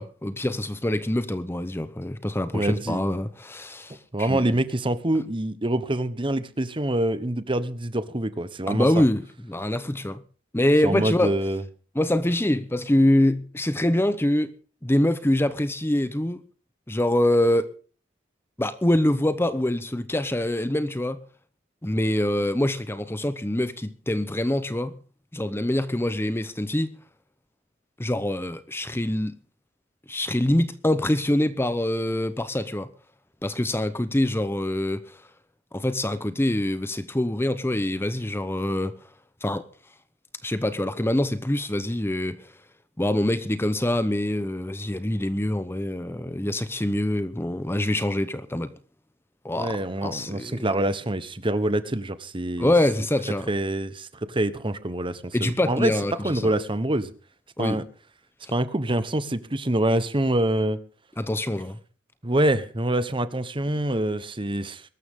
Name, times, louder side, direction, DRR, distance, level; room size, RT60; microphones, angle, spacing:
voice 1, 0.0-4.6 8.7-9.2 9.5-10.2 10.5-11.4 11.9-14.5 14.8-16.4 16.9-17.7 18.6-21.2 21.8-24.9 25.3-26.9 28.0-29.3 30.1-32.9 33.4-35.2 35.7-38.9 39.4-39.6 40.4-42.5 43.0-48.7 49.4-50.7 52.6-53.5 55.3-56.5 57.6-57.8 58.4-58.5 61.2-61.8, left 1 dB, 10° left, 0.8 m, -25 dB
voice 2, 2.5-3.0 4.1-9.0 10.8-11.6 49.5-52.7 53.5-55.9 56.2-57.1 57.6-57.8 58.5-60.8 62.2-64.8, right 1 dB, 25° right, 1.1 m, -25 dB
22.0 x 13.0 x 3.7 m
head